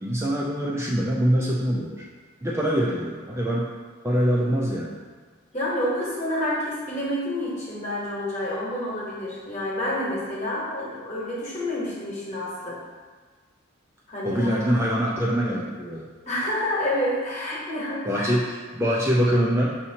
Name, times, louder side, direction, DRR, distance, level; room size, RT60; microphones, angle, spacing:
voice 1, 0.0-2.0 2.4-3.7 4.0-5.0 14.2-16.1 18.0-19.8, equal, 10° right, -5 dB, 0.3 m, -24 dB
voice 2, 5.5-12.8 14.1-14.6 16.3-18.3, left 1 dB, 35° left, -5 dB, 1.1 m, -28 dB
6.0 x 2.8 x 2.8 m, 1.5 s
head